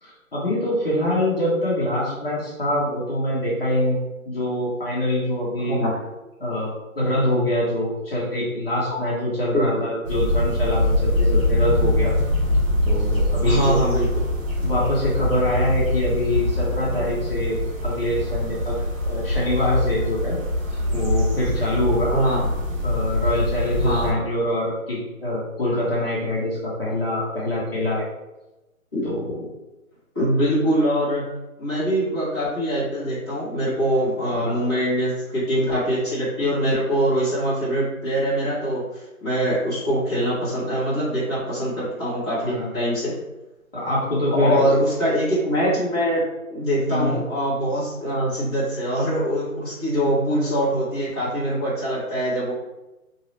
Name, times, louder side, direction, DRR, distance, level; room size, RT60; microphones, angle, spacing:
voice 1, 0.0-4.0 4.3-5.8 6.4-12.1 12.9-13.8 14.6-18.8 19.0-20.4 20.7-22.1 22.8-28.1 29.0-29.5 34.3-34.6 42.4-42.7 43.7-44.7 46.9-47.2, left 1 dB, 40° left, -7 dB, 1.0 m, -24 dB
sound 1, 10.1-24.1, left 1 dB, 65° right, 1.2 m, -23 dB
voice 2, 13.4-14.2 22.1-22.5 23.8-24.2 28.9-29.0 30.1-31.3 31.6-38.8 39.2-43.1 44.4-46.2 46.5-52.5, equal, 20° left, -14 dB, 1.0 m, -23 dB
3.1 x 2.7 x 3.1 m, 1.0 s
hypercardioid pair, 175°, 43 cm